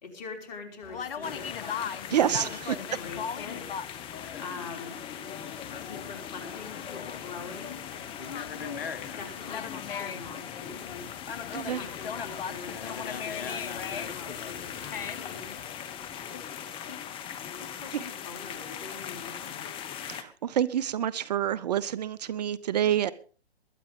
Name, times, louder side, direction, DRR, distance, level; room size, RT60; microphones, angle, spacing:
voice 1, 0.0-3.7 4.4-5.1 5.8-7.9 8.2-8.4 9.2-11.1 11.7-15.6 16.3-16.5 16.8-17.0 17.6-19.7, left 4 dB, 45° left, 4 dB, 5.2 m, -44 dB
Conversation, 0.8-15.8, left 7 dB, 60° left, 1.3 m, -39 dB
sound 1, 1.2-20.2, left 9 dB, 15° left, 1.1 m, -40 dB
voice 2, 2.1-2.8 11.5-11.8 20.1-23.1, right 10 dB, 40° right, 19 dB, 0.7 m, -27 dB
21.5 x 8.8 x 5.4 m, 0.40 s
hypercardioid pair, 135°, 32 cm